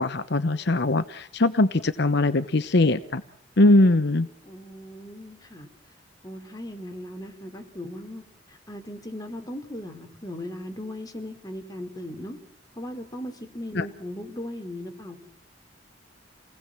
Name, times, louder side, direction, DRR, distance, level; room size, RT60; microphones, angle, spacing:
voice 1, 0.0-3.2 3.6-4.3 13.8-13.9, left 2 dB, 60° left, 11 dB, 0.9 m, -21 dB
voice 2, 4.4-5.7 6.2-12.4 12.8-15.2, left 1 dB, 20° left, 4 dB, 3.7 m, -38 dB
29.0 x 19.0 x 7.5 m, 0.70 s
head